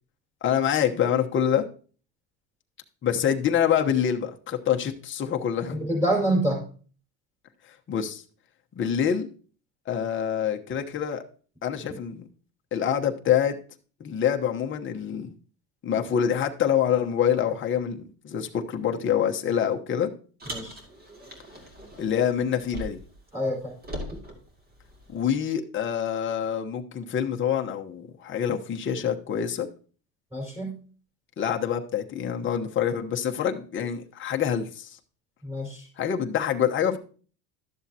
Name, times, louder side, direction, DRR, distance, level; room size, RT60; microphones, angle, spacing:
voice 1, 0.4-1.6 3.0-5.9 7.9-8.2 8.8-9.3 9.9-11.2 11.6-12.3 12.7-13.6 14.0-15.3 15.8-20.1 22.0-23.0 25.1-29.7 31.4-35.0 36.0-37.0, left 8 dB, 30° left, 3 dB, 1.0 m, -26 dB
voice 2, 5.7-6.6 20.5-20.8 23.3-23.7 30.3-30.8 35.4-35.9, right 1 dB, 5° right, -2 dB, 4.8 m, -27 dB
Car, 20.4-23.2 23.5-25.3, equal, 25° right, 2.4 m, -40 dB
12.0 x 7.2 x 2.8 m, 0.40 s
supercardioid pair, 115°, 40 cm